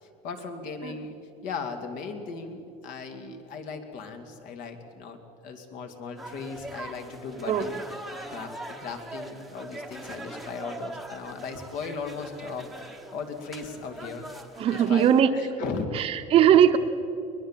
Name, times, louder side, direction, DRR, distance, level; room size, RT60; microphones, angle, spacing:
voice 1, 0.0-1.2 1.4-7.8 8.3-14.3 14.7-16.1 16.5-16.6, left 4 dB, 60° left, 5 dB, 2.6 m, -37 dB
sound 1, 6.2-15.2, right 1 dB, ahead, 1.1 m, -42 dB
voice 2, 14.6-15.3 15.9-16.8, right 9 dB, 35° right, 8 dB, 1.0 m, -19 dB
22.5 x 20.5 x 7.4 m, 2.8 s
cardioid pair, 165°, 16 cm